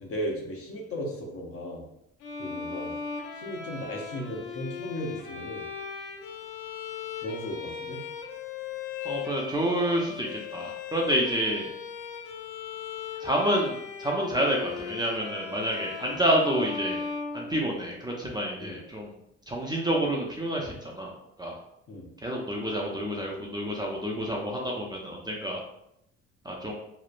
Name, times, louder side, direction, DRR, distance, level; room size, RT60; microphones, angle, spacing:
voice 1, 0.0-1.8 2.4-2.9 3.4-5.7 7.2-8.0 16.0-16.2 18.6-18.8 21.9-22.1, equal, 50° left, -1 dB, 0.8 m, -36 dB
Bowed string instrument, 2.2-18.1, left 5 dB, 85° left, 0.5 m, -38 dB
voice 2, 9.0-11.7 13.2-17.0 17.3-19.1 19.5-21.1 21.4-21.5 22.2-25.6 26.5-26.7, right 1 dB, 15° right, -2 dB, 0.5 m, -28 dB
3.0 x 2.0 x 2.4 m, 0.79 s
cardioid pair, 90°, 30 cm